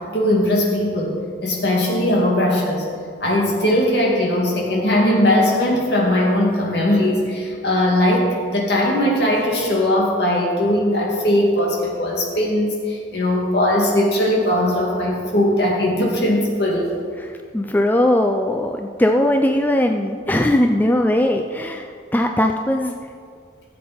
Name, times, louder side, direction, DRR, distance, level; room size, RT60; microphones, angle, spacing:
voice 1, 0.1-1.2 1.4-2.9 3.2-16.9, left 1 dB, 65° left, -2 dB, 2.3 m, -19 dB
voice 2, 17.2-22.9, left 1 dB, 10° left, 4 dB, 0.3 m, -19 dB
14.5 x 7.4 x 4.3 m, 2.2 s
head